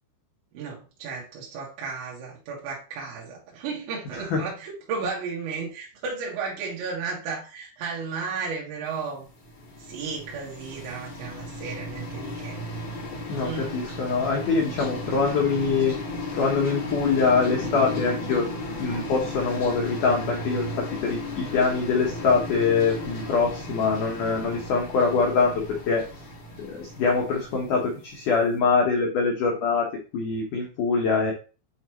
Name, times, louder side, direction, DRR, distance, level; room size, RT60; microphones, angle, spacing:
voice 1, 0.5-9.2 9.9-12.6 13.4-13.8, right 5 dB, 75° right, -4 dB, 4.0 m, -34 dB
sound 1, 9.2-28.2, left 1 dB, 40° left, 2.0 m, -35 dB
voice 2, 13.3-16.0 16.3-18.5 18.8-20.7 21.0-26.0 26.6-29.9 30.1-31.3, left 5 dB, 80° left, 0 dB, 1.8 m, -24 dB
9.0 x 4.1 x 3.1 m, 0.34 s
omnidirectional pair, 5.5 m